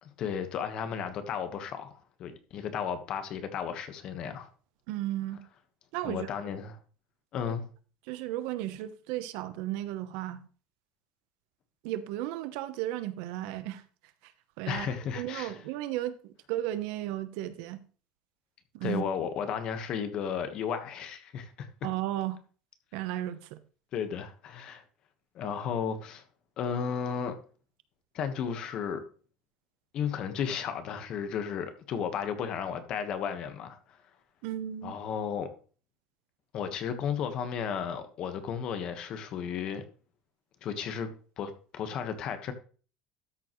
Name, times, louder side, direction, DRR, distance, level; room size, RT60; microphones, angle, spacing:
voice 1, 0.0-4.5 6.0-6.8 7.3-7.6 14.7-15.5 18.8-21.7 23.9-24.8 25.3-26.2 26.6-27.4 28.1-29.0 29.9-34.0 34.8-35.5 36.5-39.8 40.6-41.1 41.4-42.5, left 7 dB, 40° left, 1.4 m, -34 dB
voice 2, 4.9-5.4 5.9-6.3 7.5-7.6 8.1-10.5 11.8-13.8 14.2-14.3 14.6-17.8 18.7-19.0 21.8-22.4 22.9-23.6 34.4-34.9, right 13 dB, 75° right, 0.9 m, -34 dB
13.0 x 7.0 x 3.1 m
cardioid pair, 160°, 2 cm